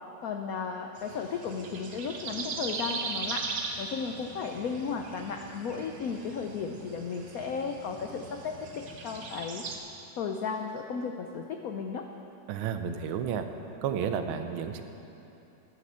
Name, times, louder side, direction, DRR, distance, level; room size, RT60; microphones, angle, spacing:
voice 1, 0.2-3.5 3.8-9.6 10.2-12.1, left 5 dB, 85° left, 4 dB, 0.7 m, -34 dB
sound 1, 1.0-9.8, right 4 dB, 60° right, 1.6 m, -39 dB
voice 2, 12.5-13.5 13.8-14.8, right 8 dB, 80° right, 8 dB, 1.6 m, -31 dB
11.5 x 9.9 x 7.4 m, 2.9 s
omnidirectional pair, 2.3 m